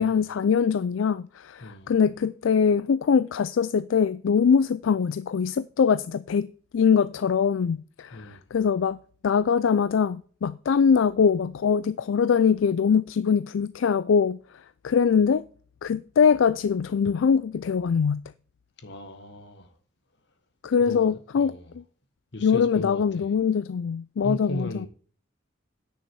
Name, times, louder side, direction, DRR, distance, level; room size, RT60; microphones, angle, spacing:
voice 1, 0.0-9.0 9.2-14.4 14.8-15.4 15.8-18.2 20.6-21.6 22.4-24.9, left 6 dB, 80° left, 0.4 m, -23 dB
voice 2, 1.6-1.9 8.1-8.4 18.8-19.7 20.8-21.7 22.3-23.3 24.2-24.9, equal, 65° left, 1.6 m, -37 dB
9.7 x 6.4 x 4.6 m
head